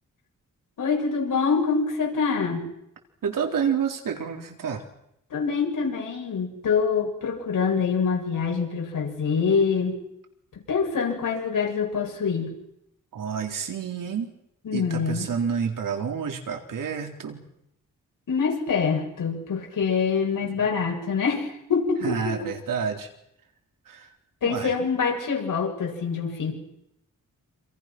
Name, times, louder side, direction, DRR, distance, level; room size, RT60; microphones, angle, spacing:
voice 1, 0.8-2.7 5.3-10.0 10.7-12.5 14.6-15.3 18.3-22.4 24.4-26.5, left 5 dB, 75° left, 1 dB, 7.5 m, -25 dB
voice 2, 3.2-4.9 13.1-14.3 14.7-17.5 20.4-20.8 22.0-23.1 23.9-24.1 24.4-24.7, right 7 dB, 80° right, 3 dB, 3.9 m, -29 dB
28.0 x 27.5 x 6.1 m, 0.81 s
wide cardioid pair, 120°, 33 cm